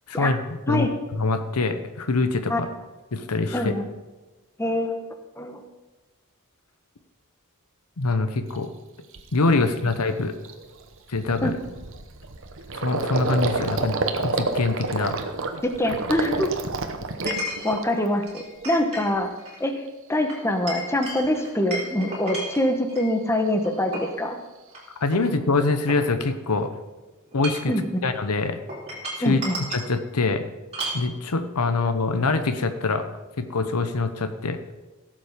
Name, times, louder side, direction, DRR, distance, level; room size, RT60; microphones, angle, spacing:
voice 1, 0.1-0.4 0.7-0.9 1.2-2.7 3.1-3.7 8.0-8.7 9.3-10.3 11.1-11.6 12.7-14.0 14.2-15.1 25.0-26.7 27.3-27.7 28.0-28.6 29.2-29.4 29.7-30.5 30.9-33.0 33.4-34.6, left 3 dB, 85° left, 9 dB, 0.9 m, -24 dB
voice 2, 3.5-3.9 4.6-5.0 5.4-5.6 11.4-11.5 15.8-16.5 17.2-17.3 17.6-19.3 19.6-19.7 20.1-24.4 27.7-28.0 29.2-29.5, left 1 dB, 10° left, 5 dB, 1.1 m, -24 dB
Gurgling, 8.5-8.6 9.1-9.4 9.8-9.9 10.2-18.2 18.6-19.2, right 3 dB, 60° right, 1.0 m, -29 dB
Chink clink, 17.3-17.8 18.3-19.1 19.4-19.6 20.3-23.1 23.6-24.2 24.7-24.8 25.1-26.5 27.2-27.8 28.7-29.9 30.7-31.1, right 1 dB, 30° right, 3.9 m, -34 dB
16.0 x 7.5 x 5.2 m, 1.2 s
head